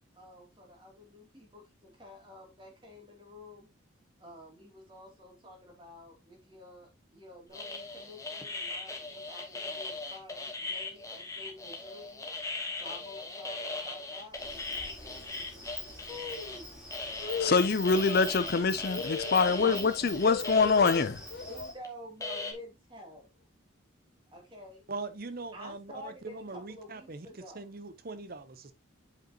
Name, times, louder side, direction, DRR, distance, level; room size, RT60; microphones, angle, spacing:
voice 1, 0.1-3.7 4.2-12.2 12.8-15.1 16.0-16.8 19.4-19.9 21.5-23.4 24.3-24.8 25.5-27.7, left 1 dB, 25° right, 2.8 m, -49 dB
sound 1, 7.5-16.6 16.9-21.1 21.8-21.9 22.2-22.5, left 3 dB, 15° left, 1.2 m, -39 dB
Insect, 14.3-21.7, equal, 5° right, 3.6 m, -45 dB
voice 2, 17.2-21.5, left 4 dB, 50° left, 0.5 m, -25 dB
voice 3, 24.9-28.7, right 3 dB, 45° right, 0.8 m, -41 dB
8.1 x 5.2 x 2.9 m
head